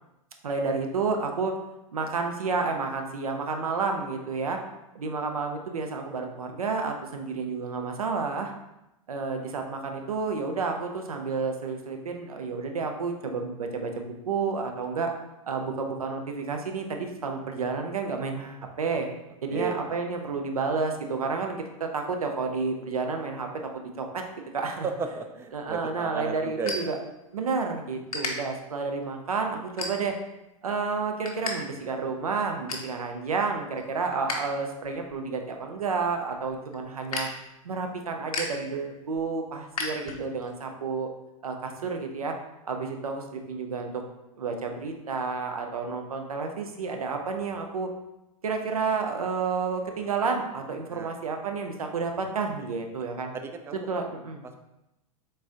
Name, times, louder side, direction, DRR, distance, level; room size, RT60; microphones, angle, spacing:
voice 1, 0.4-1.6 1.9-4.6 4.9-8.5 9.1-15.1 15.5-19.1 19.4-23.5 24.0-24.2 24.5-24.8 25.5-27.0 27.3-30.2 30.6-37.3 37.6-41.1 41.4-42.4 42.6-44.0 44.4-47.9 48.4-53.3 53.9-54.4, right 4 dB, 80° right, 4 dB, 0.6 m, -30 dB
voice 2, 19.5-19.8 24.8-27.0 50.9-51.2 53.3-53.9, right 5 dB, 15° right, 6 dB, 0.3 m, -34 dB
sound 1, 25.5-27.6 27.9-28.3 28.9-29.1 29.6-30.3 30.7-31.5 31.8-31.9 32.3-32.9 33.4-34.4 34.7-40.5, left 3 dB, 75° left, 0.8 m, -36 dB
3.8 x 3.7 x 2.6 m, 0.90 s
figure-of-eight pair, 100°, 18 cm